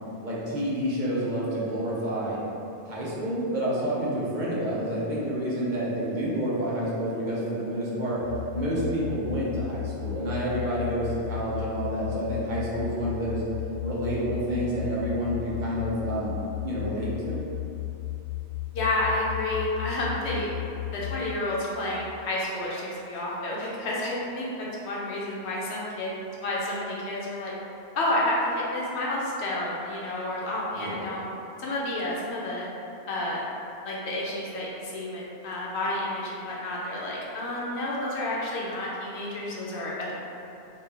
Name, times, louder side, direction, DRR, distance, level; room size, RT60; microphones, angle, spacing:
voice 1, 0.2-2.4 2.9-8.2 8.5-13.4 13.8-17.4 30.7-31.0, right 1 dB, 50° right, -7 dB, 0.8 m, -29 dB
sound 1, 8.2-21.2, left 17 dB, 50° left, 0.7 m, -35 dB
voice 2, 18.7-20.5 20.9-26.1 26.4-27.5 27.9-31.2 31.6-32.7 33.1-33.4 33.8-40.1, left 1 dB, 75° left, -5 dB, 0.9 m, -30 dB
4.0 x 2.4 x 3.3 m, 2.8 s
omnidirectional pair, 1.1 m